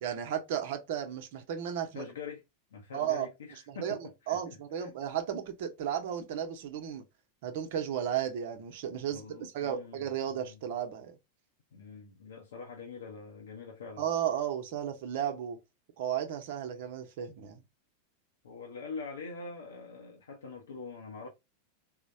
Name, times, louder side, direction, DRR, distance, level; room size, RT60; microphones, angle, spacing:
voice 1, 0.0-2.1 2.9-3.3 3.7-4.0 4.3-7.0 7.4-9.2 9.5-11.2 14.0-15.6 16.0-17.6, right 9 dB, 65° right, 0.8 m, -34 dB
voice 2, 1.9-2.4 2.7-4.4 4.7-4.9 9.1-10.6 11.7-14.0 18.4-21.3, left 4 dB, 85° left, 0.7 m, -44 dB
3.8 x 2.1 x 2.6 m
hypercardioid pair, 105°, 0 cm